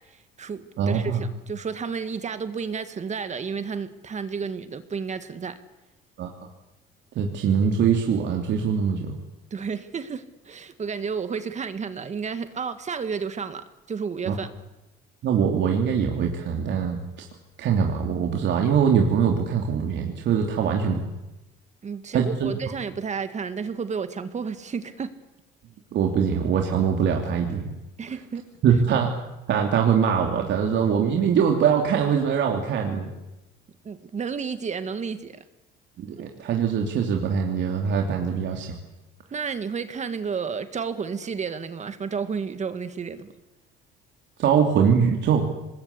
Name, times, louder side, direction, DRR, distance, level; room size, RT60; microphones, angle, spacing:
voice 1, 0.1-5.5 9.5-14.5 20.6-20.7 21.8-25.1 28.0-28.7 33.8-35.4 36.1-36.3 39.3-43.3, right 6 dB, 35° right, 10 dB, 1.8 m, -32 dB
voice 2, 0.8-1.2 6.2-6.3 7.1-9.1 14.2-14.3 15.2-17.0 17.6-21.0 22.1-22.6 25.9-27.7 28.6-29.1 29.5-33.1 36.0-38.7 44.4-45.4, right 7 dB, 60° right, 2 dB, 3.1 m, -22 dB
25.5 x 21.0 x 8.5 m, 0.98 s
cardioid pair, 110°, 21 cm